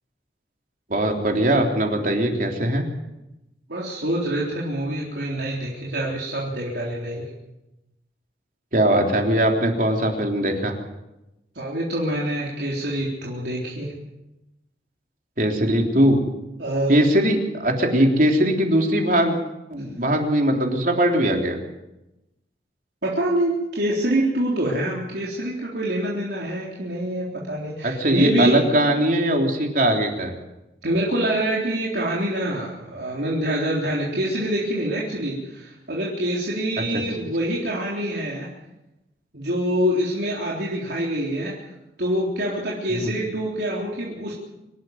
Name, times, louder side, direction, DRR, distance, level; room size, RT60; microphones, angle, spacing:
voice 1, 0.9-2.8 8.7-10.8 15.4-16.2 16.9-19.4 19.7-21.6 27.8-30.3 42.9-43.1, right 1 dB, 50° right, 2 dB, 3.5 m, -20 dB
voice 2, 3.7-7.3 11.6-13.9 16.6-17.0 23.0-28.6 30.8-38.5 39.3-41.6 42.0-44.3, right 1 dB, 70° right, -4 dB, 3.7 m, -25 dB
25.5 x 12.0 x 9.4 m, 0.94 s
head